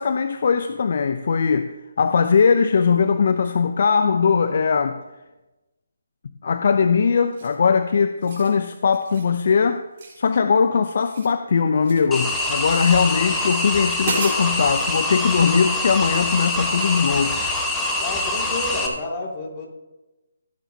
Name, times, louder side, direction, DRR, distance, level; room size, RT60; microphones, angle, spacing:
voice 1, 0.0-5.0 6.4-9.8 10.2-17.4, left 5 dB, 55° left, 0.5 m, -20 dB
sound 1, 7.3-7.7 8.1-8.5 8.9-9.3 10.0-10.6 10.9-12.1 12.7-13.1 13.6-13.7 14.0-14.9, right 3 dB, 45° right, 4.4 m, -34 dB
sound 2, 12.1-18.9, left 2 dB, 5° left, 1.2 m, -24 dB
voice 2, 18.0-19.7, left 2 dB, 25° left, 2.3 m, -30 dB
15.5 x 9.2 x 2.8 m
figure-of-eight pair, 155°, 0 cm